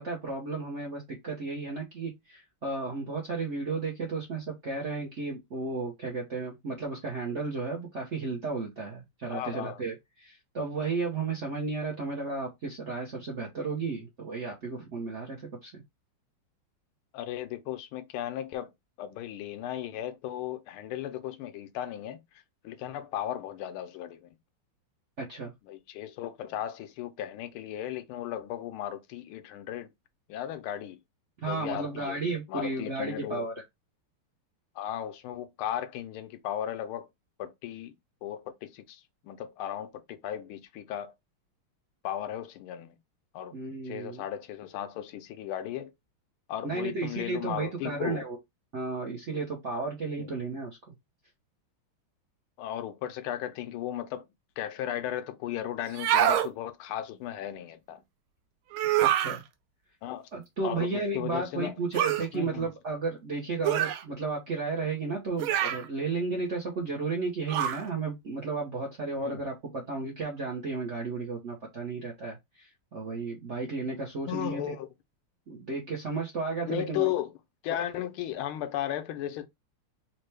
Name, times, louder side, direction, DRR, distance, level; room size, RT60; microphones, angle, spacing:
voice 1, 0.0-15.8 25.2-25.5 31.4-33.5 43.5-44.2 46.6-48.4 48.7-50.9 59.0-59.4 60.3-74.7 75.5-77.1, right 3 dB, 55° right, 0.8 m, -33 dB
voice 2, 9.3-9.8 17.1-18.7 19.0-22.2 22.6-24.3 25.7-29.9 30.3-31.0 31.5-32.2 32.5-33.5 34.8-37.1 37.4-37.9 38.2-41.1 42.0-42.9 43.3-43.6 43.9-45.9 46.5-48.2 50.2-50.3 52.6-54.3 54.6-58.0 60.0-60.3 60.6-61.7 62.3-62.7 69.2-69.4 74.3-74.9 76.6-77.3 77.6-79.5, left 11 dB, 80° left, 1.5 m, -35 dB
sound 1, 55.9-56.5 58.7-59.4 61.9-62.3 63.6-64.0 65.4-65.9 67.5-67.8, right 12 dB, 75° right, 1.4 m, -25 dB
4.3 x 2.2 x 3.2 m
omnidirectional pair, 2.4 m